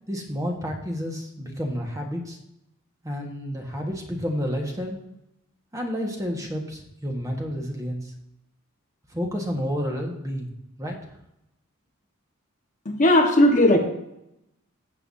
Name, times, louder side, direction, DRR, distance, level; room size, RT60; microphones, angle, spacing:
voice 1, 0.1-2.4 3.0-5.0 5.7-8.1 9.1-10.5 10.8-11.0, equal, 15° right, 1 dB, 1.5 m, -30 dB
voice 2, 12.8-13.8, left 1 dB, 35° left, 2 dB, 1.3 m, -17 dB
13.5 x 8.0 x 2.8 m, 0.84 s
head